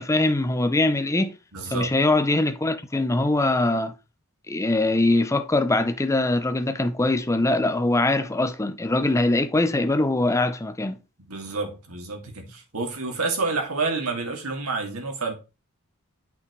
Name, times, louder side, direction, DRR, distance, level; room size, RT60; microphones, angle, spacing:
voice 1, 0.0-1.3 1.7-3.9 4.5-11.0, left 2 dB, 15° left, 0.5 m, -22 dB
voice 2, 1.5-1.9 11.3-15.3, right 3 dB, 85° right, 2.4 m, -29 dB
8.4 x 5.9 x 3.1 m
head